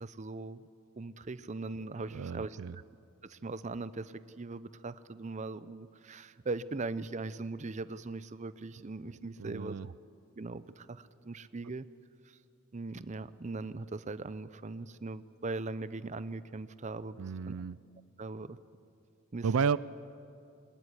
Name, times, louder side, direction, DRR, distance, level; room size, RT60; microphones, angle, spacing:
voice 1, 0.0-0.6 1.0-2.6 3.2-9.9 10.4-11.9 12.7-17.2 17.5-17.6 18.2-18.6 19.3-19.5, right 3 dB, 35° right, 15 dB, 0.6 m, -40 dB
voice 2, 2.1-2.8 9.4-9.9 17.2-17.8 19.4-19.8, right 5 dB, 85° right, 19 dB, 0.5 m, -32 dB
21.5 x 19.5 x 9.9 m, 2.5 s
head